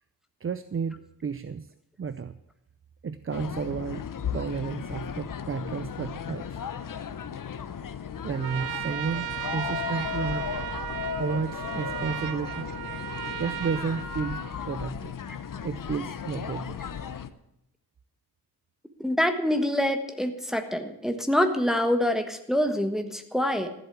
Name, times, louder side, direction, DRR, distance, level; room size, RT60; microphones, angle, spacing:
voice 1, 0.4-1.7 2.0-2.4 3.0-4.0 4.3-6.6 8.2-10.4 11.2-12.7 13.4-15.1 15.6-16.8, right 6 dB, 35° right, 13 dB, 0.5 m, -32 dB
sound 1, 3.3-17.3, left 7 dB, 55° left, 0.9 m, -35 dB
Trumpet, 8.3-14.9, right 12 dB, 75° right, 0.7 m, -36 dB
voice 2, 19.0-23.7, left 1 dB, ahead, 5 dB, 1.4 m, -25 dB
14.0 x 8.1 x 8.1 m, 0.79 s
wide cardioid pair, 105°, 39 cm